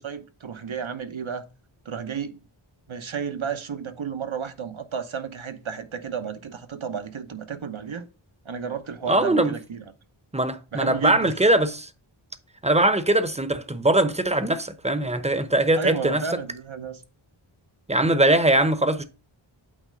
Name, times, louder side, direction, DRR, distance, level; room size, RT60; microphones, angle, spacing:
voice 1, 0.0-1.4 1.8-2.4 2.9-8.1 8.4-9.8 10.7-11.3 15.8-17.0, right 6 dB, 70° right, 0.9 m, -32 dB
voice 2, 9.1-9.5 10.3-11.9 12.6-16.2 17.9-19.0, right 1 dB, 15° right, 0.7 m, -21 dB
8.6 x 3.2 x 5.1 m
wide cardioid pair, 50°, 50 cm